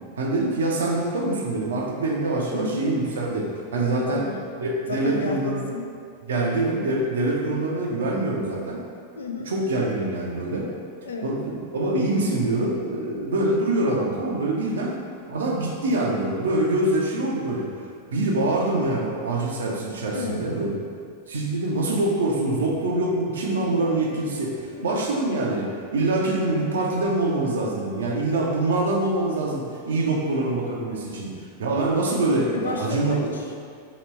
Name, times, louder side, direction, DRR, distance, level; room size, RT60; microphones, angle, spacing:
voice 1, 0.2-3.4 3.7-4.2 4.6-5.7 6.3-8.8 9.5-10.7 11.2-14.9 15.3-17.7 18.1-20.7 21.3-31.3 31.6-33.2, right 2 dB, 65° right, -1 dB, 0.6 m, -24 dB
voice 2, 2.5-2.9 3.9-4.4 4.9-5.9 6.4-6.5 9.2-9.5 11.0-11.3 14.8-14.9 20.1-20.5 23.5-23.8 24.7-25.1 32.5-33.6, left 3 dB, 70° left, 1 dB, 0.4 m, -32 dB
3.0 x 2.9 x 4.3 m, 2.2 s
figure-of-eight pair, 90°, 0 cm